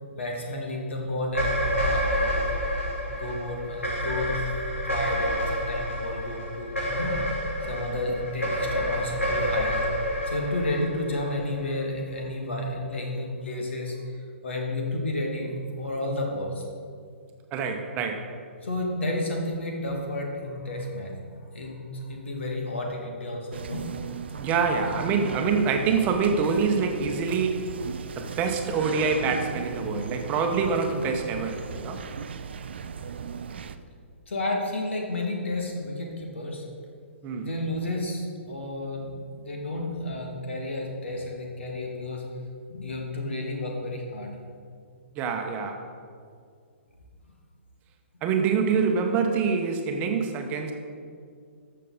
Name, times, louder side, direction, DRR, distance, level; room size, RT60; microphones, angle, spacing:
voice 1, 0.1-2.4 3.1-9.9 10.3-14.0 14.4-16.6 18.6-23.8 25.3-25.4 34.3-36.6 37.4-42.2 42.7-44.3, left 1 dB, 65° left, 0 dB, 2.2 m, -31 dB
sound 1, 1.2-11.7, equal, 80° left, 2.6 m, -29 dB
voice 2, 17.5-18.3 24.4-27.7 28.2-32.0 37.2-37.5 45.2-45.8 48.2-50.7, right 5 dB, 20° right, 4 dB, 1.0 m, -25 dB
sound 2, 23.5-33.8, right 6 dB, 55° right, 0.5 m, -37 dB
13.5 x 6.6 x 4.0 m, 2.2 s
figure-of-eight pair, 125°, 7 cm